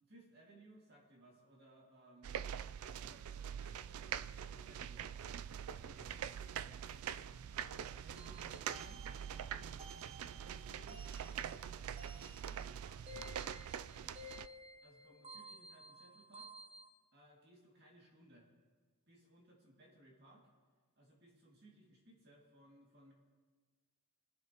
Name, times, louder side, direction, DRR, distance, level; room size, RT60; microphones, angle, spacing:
voice 1, 0.0-2.5 3.0-5.3 5.7-6.2 7.5-9.7 10.4-13.3 14.8-16.5 17.1-18.5 19.1-20.5 21.0-23.1, right 1 dB, 50° right, -2 dB, 2.3 m, -63 dB
sound 1, 2.2-14.5, right 9 dB, 85° right, 0.3 m, -44 dB
voice 2, 5.7-6.2 6.6-7.4 14.0-14.4, equal, 5° left, -7 dB, 2.3 m, -67 dB
sound 2, 8.2-16.9, equal, 25° right, 0.9 m, -55 dB
23.0 x 9.4 x 3.0 m, 1.5 s
head